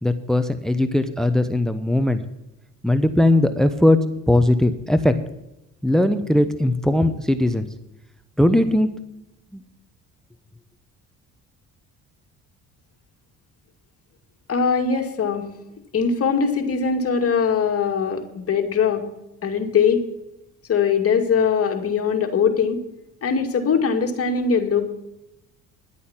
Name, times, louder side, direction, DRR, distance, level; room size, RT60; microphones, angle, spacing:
voice 1, 0.0-2.2 2.8-4.0 4.3-5.2 5.8-7.6 8.4-8.9 9.5-9.6, left 1 dB, ahead, 11 dB, 0.9 m, -19 dB
voice 2, 14.5-15.5 15.9-19.0 19.4-20.0 20.7-22.8 23.2-24.9, left 6 dB, 45° left, 3 dB, 2.3 m, -21 dB
11.5 x 8.5 x 7.3 m, 0.89 s
supercardioid pair, 80°, 33 cm